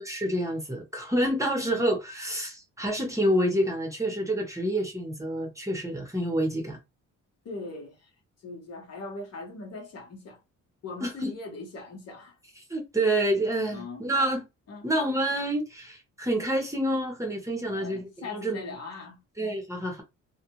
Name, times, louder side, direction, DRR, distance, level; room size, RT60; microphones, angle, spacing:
voice 1, 0.0-6.8 11.0-11.3 12.7-14.4 14.8-18.6 19.4-20.0, right 1 dB, 10° right, 0.9 m, -28 dB
voice 2, 7.4-8.1 8.4-10.4 10.8-12.4 13.7-14.0 14.7-14.9 17.7-19.2, left 3 dB, 55° left, 1.1 m, -40 dB
2.4 x 2.2 x 3.0 m
cardioid pair, 90°, 30 cm